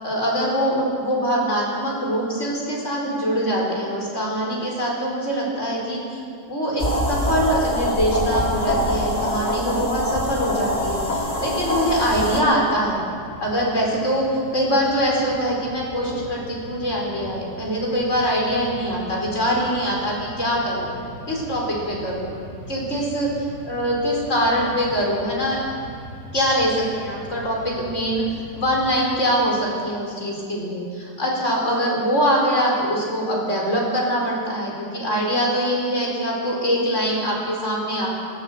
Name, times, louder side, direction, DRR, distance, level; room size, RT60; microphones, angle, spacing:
voice 1, 0.0-6.2 6.5-13.0 13.4-20.9 21.3-22.3 22.7-25.6 26.3-38.1, equal, 45° left, -3 dB, 5.1 m, -23 dB
sound 1, 6.8-12.4, left 1 dB, 25° left, 2.3 m, -24 dB
Mechanisms, 10.2-29.7, right 1 dB, 75° left, 7.9 m, -41 dB
21.0 x 16.0 x 8.1 m, 2.4 s
omnidirectional pair, 1.7 m